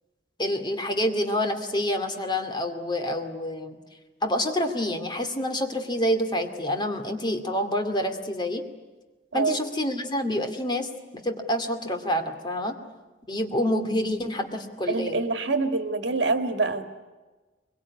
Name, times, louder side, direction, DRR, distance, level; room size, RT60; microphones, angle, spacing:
voice 1, 0.4-3.8 4.2-8.6 9.3-12.8 13.3-15.2, equal, 25° left, 6 dB, 2.4 m, -27 dB
voice 2, 14.9-16.8, right 3 dB, 65° right, 8 dB, 2.0 m, -25 dB
23.5 x 23.0 x 9.7 m, 1.2 s
head